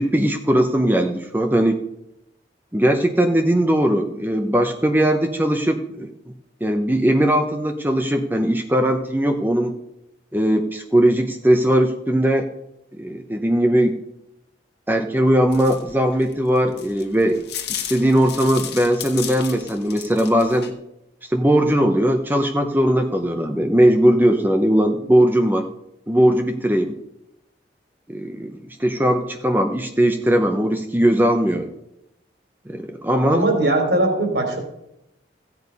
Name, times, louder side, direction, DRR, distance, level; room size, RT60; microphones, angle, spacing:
voice 1, 0.0-1.8 2.7-6.1 6.6-9.7 10.3-12.5 13.0-14.0 14.9-17.4 17.7-20.7 21.3-25.7 26.1-27.0 28.1-31.7 32.7-33.4, right 1 dB, 10° right, 5 dB, 0.7 m, -19 dB
sound 1, 15.5-20.7, left 10 dB, 60° left, 1.5 m, -33 dB
voice 2, 33.3-34.6, right 2 dB, 65° right, 4 dB, 3.3 m, -20 dB
15.5 x 8.4 x 5.4 m, 0.84 s
head